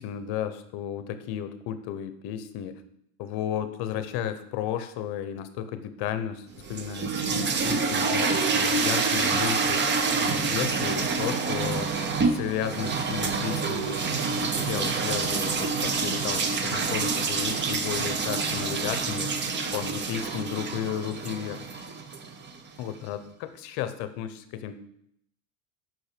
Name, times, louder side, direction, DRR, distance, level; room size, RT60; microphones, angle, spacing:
voice 1, 0.0-2.8 3.2-9.9 10.2-12.0 12.2-19.3 19.7-21.6 22.8-24.8, left 10 dB, 50° left, 11 dB, 0.8 m, -33 dB
sound 1, 6.6-22.6, right 4 dB, 25° right, 0.6 m, -27 dB
6.2 x 4.6 x 5.0 m, 0.74 s
supercardioid pair, 125°, 49 cm